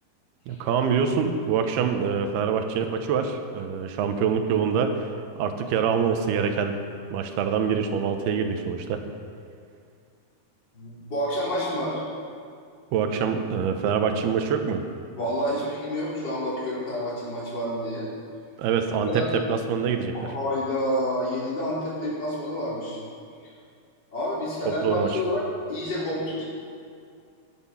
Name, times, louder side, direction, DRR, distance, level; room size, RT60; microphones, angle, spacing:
voice 1, 0.5-5.1 5.4-6.8 7.1-9.0 12.9-14.8 18.6-20.3 24.7-25.2, right 6 dB, 80° right, 6 dB, 2.9 m, -25 dB
voice 2, 10.7-12.0 15.1-18.1 19.0-19.3 20.1-23.0 23.4-23.5 24.1-26.4, equal, 25° left, -7 dB, 4.5 m, -29 dB
18.0 x 10.5 x 5.7 m, 2.3 s
omnidirectional pair, 4.7 m